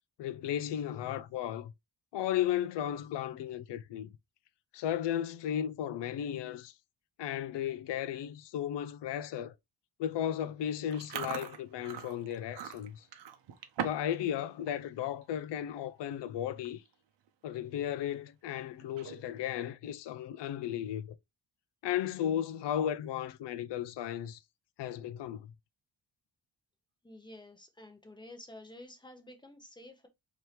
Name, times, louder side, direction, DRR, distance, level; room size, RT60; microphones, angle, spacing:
voice 1, 0.2-1.7 2.1-4.1 4.7-6.7 7.2-9.5 10.0-13.1 13.8-16.8 17.4-21.2 21.8-24.4 24.8-25.5, left 10 dB, 60° left, 0.5 m, -35 dB
Chewing mastication, 10.9-14.2 14.5-14.8 15.2-15.5 16.2-16.3 16.5-16.9 17.3-17.4 18.8-19.4, right 8 dB, 65° right, 0.8 m, -41 dB
voice 2, 27.0-30.1, left 1 dB, 10° left, 0.8 m, -51 dB
4.4 x 3.0 x 3.2 m
wide cardioid pair, 155°, 47 cm